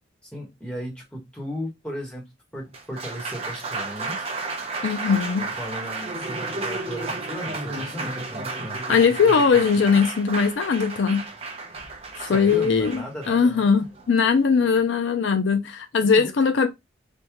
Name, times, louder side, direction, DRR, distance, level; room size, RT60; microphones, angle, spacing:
voice 1, 0.2-2.3 2.5-4.3 5.0-8.8 12.2-13.9 16.0-16.3, equal, 5° left, 1.0 m, -36 dB
Applause, 2.6-14.8, right 3 dB, 30° right, 0.6 m, -33 dB
voice 2, 4.8-5.5 8.9-11.3 12.2-13.0 13.3-16.7, left 5 dB, 65° left, 0.4 m, -20 dB
3.5 x 2.2 x 2.9 m
head